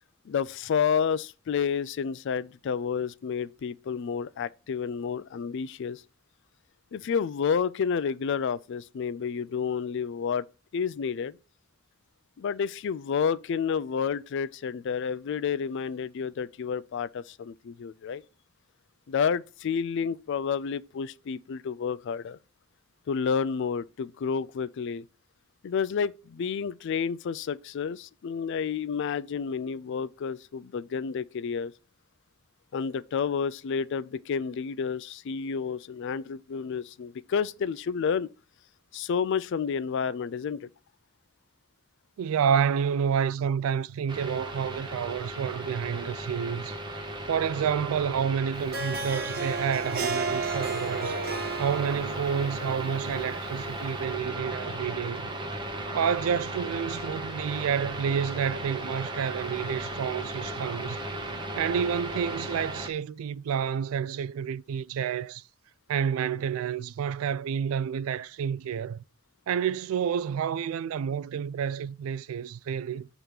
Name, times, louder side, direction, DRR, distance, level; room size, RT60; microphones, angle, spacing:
voice 1, 0.3-6.0 6.9-10.5 10.7-11.4 12.4-18.2 19.1-22.4 23.1-25.1 25.6-31.7 32.7-38.3 38.9-40.7, left 6 dB, 60° left, 0.3 m, -30 dB
voice 2, 42.2-46.8 47.3-51.2 51.6-55.2 55.9-61.0 61.5-65.4 65.9-69.0 69.5-73.1, right 7 dB, 85° right, 0.3 m, -29 dB
sound 1, 44.1-62.9, right 1 dB, 25° right, 0.9 m, -36 dB
Harp, 48.5-54.0, right 3 dB, 50° right, 0.7 m, -34 dB
8.1 x 3.0 x 5.0 m
head